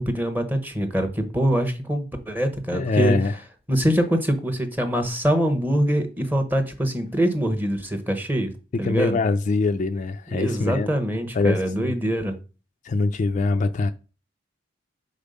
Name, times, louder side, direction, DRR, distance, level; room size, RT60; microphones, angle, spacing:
voice 1, 0.0-3.1 3.7-8.5 8.8-9.2 10.3-12.4, equal, 10° right, 0.9 m, -24 dB
voice 2, 2.7-3.4 8.8-10.9 11.3-12.0 12.8-13.9, left 3 dB, 40° left, 0.3 m, -23 dB
5.2 x 4.1 x 5.2 m
head